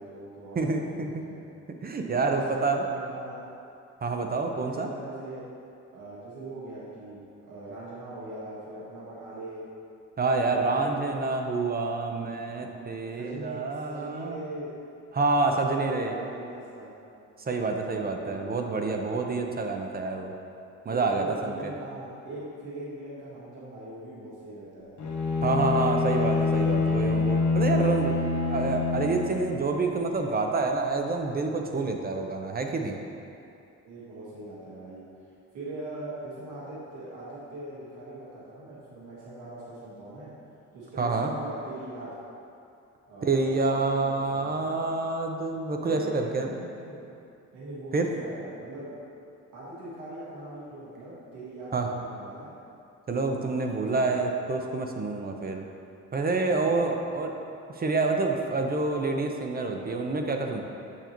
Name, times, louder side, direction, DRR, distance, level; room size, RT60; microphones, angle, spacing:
voice 1, 0.0-1.4 2.1-3.4 4.5-5.4 5.9-7.2 7.5-9.7 10.5-11.1 12.5-12.7 13.2-14.7 15.4-16.9 17.8-18.6 19.6-20.0 20.9-24.9 33.8-35.0 35.5-40.3 40.7-42.2 43.1-44.7 45.8-47.1 47.5-49.0 49.5-52.5 53.4-54.3 56.5-57.0, right 1 dB, 90° right, -8 dB, 1.7 m, -41 dB
voice 2, 0.6-1.2 1.8-2.8 4.0-4.9 10.2-14.4 15.1-16.1 17.5-20.3 20.8-21.5 25.4-28.2 28.5-32.9 41.0-41.3 43.2-46.5 47.9-48.1 51.7-51.9 53.1-55.6 56.1-57.3 57.8-60.6, right 3 dB, 30° right, 3 dB, 0.7 m, -27 dB
Bowed string instrument, 25.0-29.8, left 3 dB, 65° left, 1.0 m, -26 dB
7.2 x 6.6 x 3.0 m, 2.6 s
cardioid pair, 90°, 30 cm